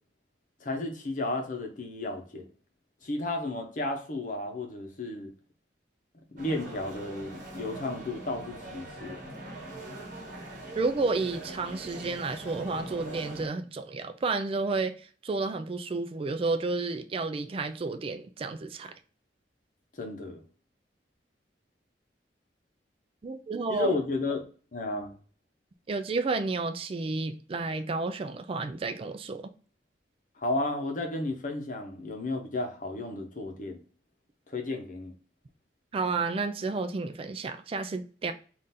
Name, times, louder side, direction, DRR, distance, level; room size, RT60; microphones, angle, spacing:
voice 1, 0.6-2.5 3.0-5.3 6.3-9.2 20.0-20.4 23.7-24.4 24.7-25.1 30.4-33.8 34.5-35.1, left 2 dB, 50° left, 0.8 m, -33 dB
sound 1, 6.4-13.5, right 1 dB, 50° right, 1.3 m, -42 dB
voice 2, 10.8-18.9 23.2-23.9 25.9-29.4 35.9-38.3, right 3 dB, 30° right, 0.3 m, -31 dB
3.8 x 2.5 x 4.1 m
head